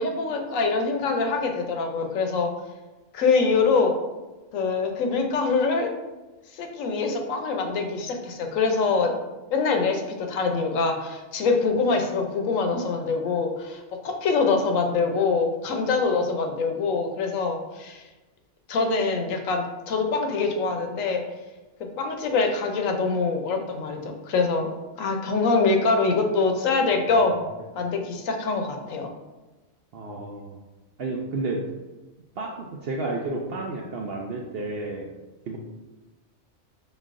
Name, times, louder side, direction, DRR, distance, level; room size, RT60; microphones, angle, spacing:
voice 1, 0.0-2.5 3.1-3.9 4.5-5.9 6.6-9.1 9.5-18.0 18.7-21.2 22.0-24.7 25.0-27.4 27.8-29.1, left 4 dB, 75° left, 4 dB, 1.0 m, -24 dB
voice 2, 29.9-30.6 31.0-31.7 32.4-35.2 35.5-35.6, right 2 dB, 65° right, 0 dB, 0.6 m, -31 dB
5.2 x 3.7 x 2.5 m, 1.1 s
omnidirectional pair, 1.4 m